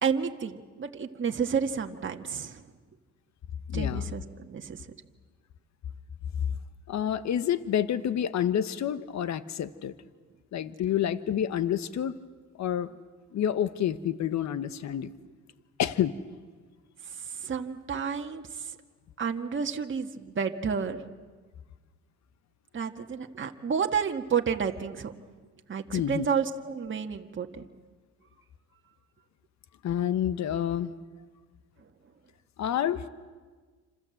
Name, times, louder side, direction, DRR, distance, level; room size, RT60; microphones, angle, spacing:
voice 1, 0.0-2.7 3.7-4.9 17.0-18.8 19.2-21.0 22.7-25.1 25.7-27.6, right 6 dB, 40° right, 4 dB, 1.7 m, -31 dB
voice 2, 3.7-4.0 6.9-9.9 10.5-12.2 12.6-12.9 13.3-15.1 15.8-16.1 25.9-26.3 29.8-30.9 32.6-33.1, left 10 dB, 65° left, 12 dB, 1.2 m, -28 dB
28.5 x 26.5 x 7.8 m, 1.4 s
cardioid pair, 90°, 30 cm